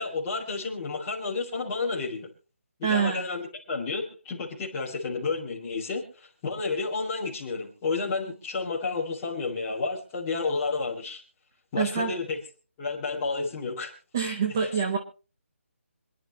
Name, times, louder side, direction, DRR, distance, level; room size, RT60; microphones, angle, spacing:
voice 1, 0.0-2.3 2.8-11.2 11.7-12.4 12.8-13.9 14.6-14.7, left 4 dB, 10° left, -5 dB, 2.4 m, -31 dB
voice 2, 2.8-3.2 11.8-12.1 14.1-15.0, right 6 dB, 15° right, 4 dB, 0.6 m, -26 dB
26.5 x 10.5 x 3.0 m, 0.35 s
hypercardioid pair, 180°, 8 cm